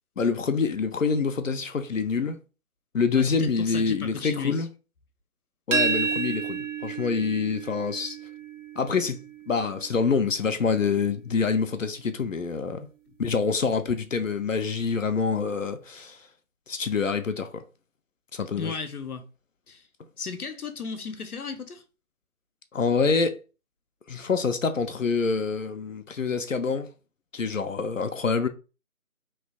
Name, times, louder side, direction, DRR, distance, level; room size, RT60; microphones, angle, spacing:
voice 1, 0.2-2.4 2.9-4.7 5.7-8.2 8.8-12.9 13.2-16.2 16.7-17.6 18.3-18.8 22.7-23.4 24.1-26.9 27.3-28.5, left 5 dB, 65° left, 0.5 m, -26 dB
voice 2, 3.1-4.6 18.5-19.3 19.7-19.8 20.2-21.8, left 5 dB, 90° left, 0.8 m, -35 dB
sound 1, 5.7-11.5, right 5 dB, 60° right, 0.7 m, -32 dB
3.1 x 2.4 x 3.6 m
figure-of-eight pair, 170°, 43 cm